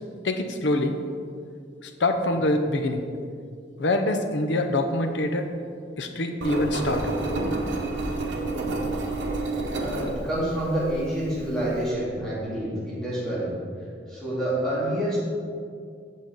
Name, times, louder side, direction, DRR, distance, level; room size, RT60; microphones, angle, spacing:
voice 1, 0.2-1.0 1.8-3.0 3.8-5.5 6.0-7.0, left 2 dB, 75° left, 6 dB, 0.7 m, -25 dB
Engine, 6.4-11.9, right 2 dB, 90° right, 1.1 m, -30 dB
voice 2, 9.8-13.5 14.1-15.2, right 1 dB, 5° left, -9 dB, 2.1 m, -28 dB
8.4 x 7.1 x 3.9 m, 2.3 s
head